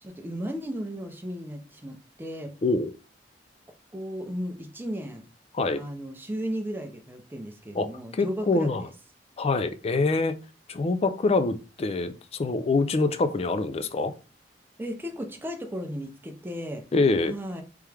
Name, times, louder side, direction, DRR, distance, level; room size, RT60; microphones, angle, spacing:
voice 1, 0.0-2.5 3.9-5.3 5.7-8.9 14.8-16.9 17.3-17.6, equal, 10° right, 0.6 m, -35 dB
voice 2, 7.7-8.8 9.4-10.4 10.7-14.1 16.9-17.3, left 3 dB, 35° left, 0.4 m, -25 dB
3.5 x 3.1 x 3.3 m
head